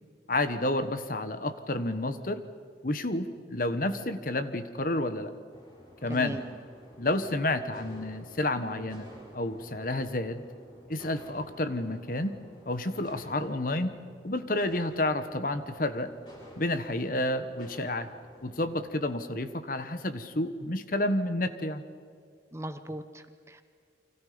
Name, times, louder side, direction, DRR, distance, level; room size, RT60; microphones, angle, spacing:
voice 1, 0.3-2.4 2.8-5.3 6.0-6.4 7.0-10.4 10.9-12.3 12.7-14.0 14.2-16.1 16.6-18.1 18.4-21.8, left 1 dB, 50° left, 10 dB, 1.3 m, -30 dB
sound 1, 5.5-18.8, equal, 25° left, 6.5 m, -52 dB
voice 2, 6.1-6.4 22.5-23.6, right 1 dB, 15° right, 9 dB, 0.9 m, -38 dB
30.0 x 25.0 x 5.2 m, 2.1 s
head